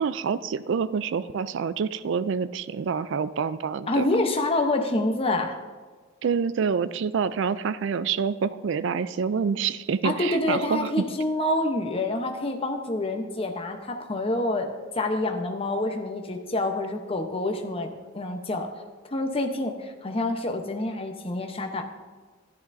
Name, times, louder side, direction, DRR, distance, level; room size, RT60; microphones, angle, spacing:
voice 1, 0.0-4.1 6.2-10.9, right 6 dB, 65° right, 15 dB, 0.4 m, -27 dB
voice 2, 3.9-5.6 10.0-18.7 19.1-21.8, left 2 dB, 30° left, 4 dB, 0.9 m, -27 dB
14.0 x 10.5 x 2.7 m, 1.4 s
head